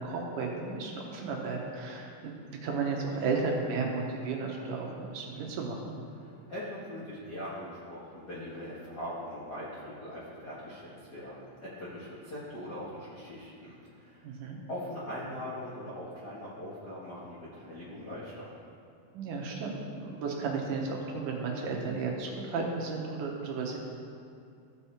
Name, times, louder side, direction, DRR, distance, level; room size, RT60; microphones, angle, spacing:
voice 1, 0.0-6.0 14.2-14.6 19.1-23.8, right 4 dB, 75° right, 0 dB, 2.4 m, -34 dB
voice 2, 6.2-14.2 14.7-18.5, left 1 dB, 50° left, -9 dB, 1.2 m, -41 dB
15.0 x 5.4 x 4.2 m, 2.5 s
omnidirectional pair, 4.0 m